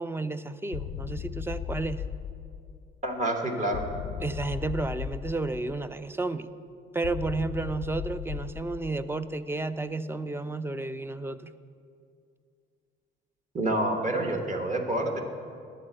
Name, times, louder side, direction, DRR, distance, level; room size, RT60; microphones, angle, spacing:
voice 1, 0.0-2.0 4.2-6.5 6.9-11.5, right 3 dB, 10° right, 13 dB, 0.3 m, -32 dB
sound 1, 0.7-3.0 3.7-6.0 7.0-9.3, left 9 dB, 90° left, 0.4 m, -37 dB
voice 2, 3.0-3.8 13.5-15.2, right 1 dB, 40° right, 3 dB, 1.2 m, -28 dB
11.0 x 4.1 x 7.5 m, 2.3 s
cardioid pair, 90°, 20 cm